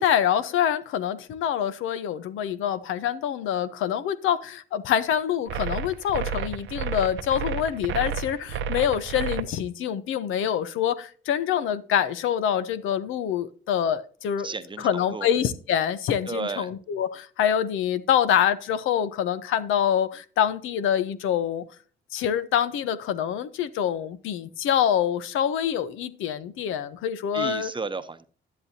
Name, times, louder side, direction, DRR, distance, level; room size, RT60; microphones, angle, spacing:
voice 1, 0.0-14.5 14.8-21.7 22.1-27.7, left 9 dB, 85° left, 0.8 m, -25 dB
sound 1, 5.5-9.4, right 6 dB, 80° right, 0.8 m, -30 dB
voice 2, 14.4-15.3 16.3-16.7 27.3-28.3, right 4 dB, 25° right, 0.8 m, -33 dB
11.0 x 10.5 x 2.8 m
cardioid pair, 90°, 20 cm